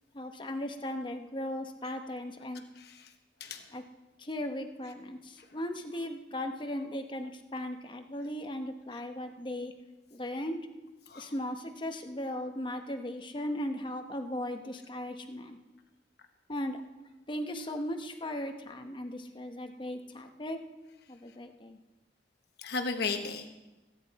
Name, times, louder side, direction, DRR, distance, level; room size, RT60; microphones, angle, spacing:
voice 1, 0.1-2.6 3.7-3.8 4.2-9.7 10.1-10.6 11.2-15.6 16.5-16.8 17.3-20.6 21.1-21.8, left 1 dB, 30° left, 5 dB, 1.0 m, -37 dB
voice 2, 2.8-3.1 3.4-3.7 11.1-11.3 22.6-23.5, left 4 dB, 65° left, 5 dB, 1.0 m, -35 dB
19.5 x 9.4 x 4.2 m, 1.1 s
head